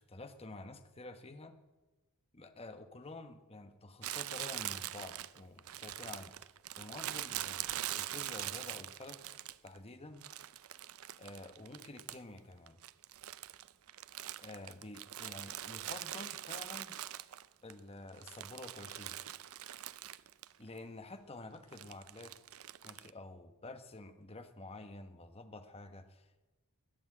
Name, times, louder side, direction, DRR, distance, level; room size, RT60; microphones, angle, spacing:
voice 1, 0.0-1.6 2.3-6.3 6.8-9.2 9.6-10.3 11.2-12.8 14.4-17.0 17.6-19.2 20.6-22.3 22.8-26.3, left 2 dB, 25° left, 8 dB, 1.1 m, -49 dB
Crumpling crinkling, 4.0-9.8 10.2-12.4 12.7-17.7 18.1-20.5 20.8-20.9 21.7-23.1, right 13 dB, 70° right, 0.5 m, -43 dB
20.5 x 7.3 x 8.5 m, 1.1 s
head